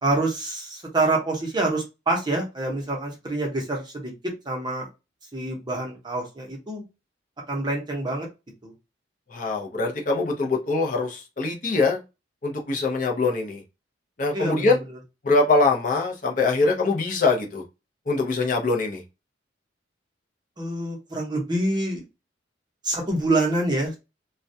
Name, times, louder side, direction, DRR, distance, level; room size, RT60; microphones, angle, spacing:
voice 1, 0.0-4.1 4.5-4.9 5.3-6.8 7.5-8.3 8.6-8.7 14.3-14.8 20.6-22.0 22.8-24.0, right 2 dB, 25° right, 0.7 m, -26 dB
voice 2, 9.3-12.0 12.4-13.6 14.2-14.8 15.2-17.6 18.1-19.0, left 3 dB, 45° left, 0.5 m, -23 dB
2.2 x 2.1 x 2.6 m
head